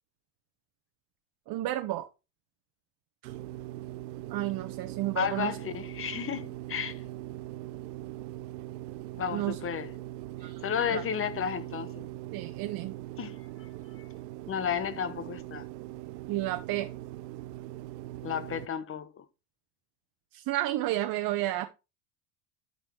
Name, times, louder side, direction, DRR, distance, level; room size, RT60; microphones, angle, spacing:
voice 1, 1.5-2.1 3.2-3.3 4.3-5.6 9.3-9.6 10.4-10.6 10.9-11.0 12.3-12.9 16.3-16.9 20.3-21.7, right 15 dB, 45° right, 1.1 m, -31 dB
sound 1, 3.2-18.7, right 15 dB, 85° right, 0.7 m, -41 dB
voice 2, 5.2-7.0 9.1-9.9 10.6-12.1 13.2-13.7 14.5-15.7 18.2-19.2, left 8 dB, 25° left, 1.2 m, -33 dB
12.0 x 4.3 x 4.5 m
hypercardioid pair, 95°, 47 cm